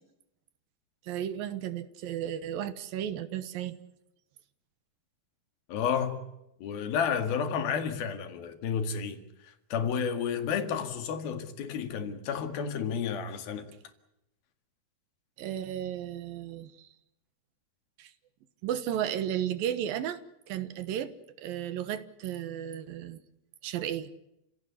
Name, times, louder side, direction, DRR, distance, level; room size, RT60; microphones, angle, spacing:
voice 1, 1.0-3.8 15.4-16.9 18.0-18.1 18.6-20.2 20.5-23.2 23.6-24.1, right 10 dB, 75° right, 2.9 m, -34 dB
voice 2, 5.7-6.2 6.6-9.2 9.7-13.7, left 7 dB, 75° left, 3.8 m, -31 dB
29.5 x 17.0 x 8.3 m
omnidirectional pair, 4.4 m